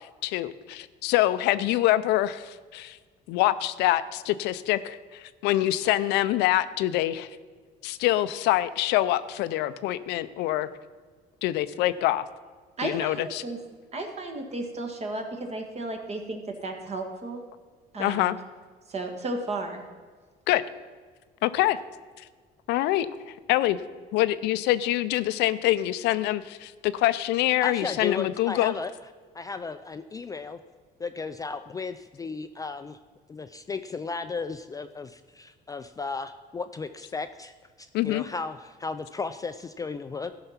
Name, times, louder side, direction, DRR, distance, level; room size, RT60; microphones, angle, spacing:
voice 1, 0.0-3.0 3.3-7.3 7.8-10.7 11.4-12.3 12.8-13.4 18.0-18.4 20.5-20.6 21.4-21.8 22.2-22.3 22.7-23.8 24.1-28.7 37.9-38.2, left 15 dB, 90° left, 14 dB, 0.5 m, -25 dB
voice 2, 12.8-13.6 13.9-17.4 17.9-18.4 18.9-19.8, right 2 dB, 40° right, 4 dB, 1.6 m, -34 dB
voice 3, 27.6-28.9 29.3-30.6 31.0-33.0 33.3-37.5 37.8-40.3, left 4 dB, 20° left, 9 dB, 0.4 m, -35 dB
13.5 x 5.7 x 5.7 m, 1.5 s
cardioid pair, 110°, 17 cm